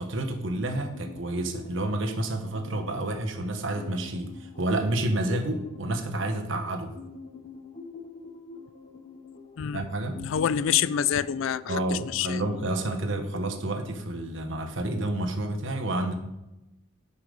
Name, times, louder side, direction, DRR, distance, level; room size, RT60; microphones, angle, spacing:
voice 1, 0.0-6.9 9.7-10.2 11.7-16.1, right 1 dB, 65° right, 6 dB, 1.2 m, -29 dB
sound 1, 0.6-15.0, left 4 dB, 25° left, 0.7 m, -45 dB
voice 2, 10.2-12.4, left 9 dB, 70° left, 18 dB, 0.4 m, -27 dB
10.0 x 5.7 x 5.2 m, 0.95 s
head